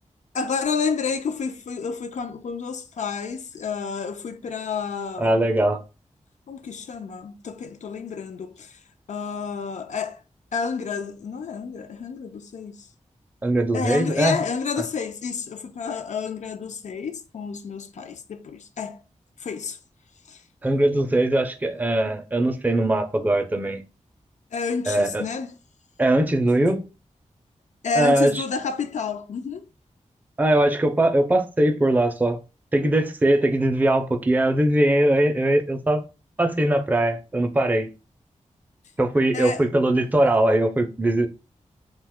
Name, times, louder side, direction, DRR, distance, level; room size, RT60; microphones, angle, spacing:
voice 1, 0.3-5.5 6.5-8.8 9.1-10.2 10.5-12.9 13.7-19.0 19.4-19.8 20.3-20.4 24.5-25.5 27.8-29.7 39.3-39.7, left 5 dB, 70° left, 0.4 m, -30 dB
voice 2, 5.2-5.8 13.4-14.4 20.6-23.8 24.9-25.3 26.0-26.8 28.0-28.4 30.4-32.4 32.7-36.0 36.4-37.9 39.0-41.3, right 1 dB, 15° right, 0.4 m, -21 dB
2.7 x 2.2 x 3.4 m
wide cardioid pair, 120°, 13 cm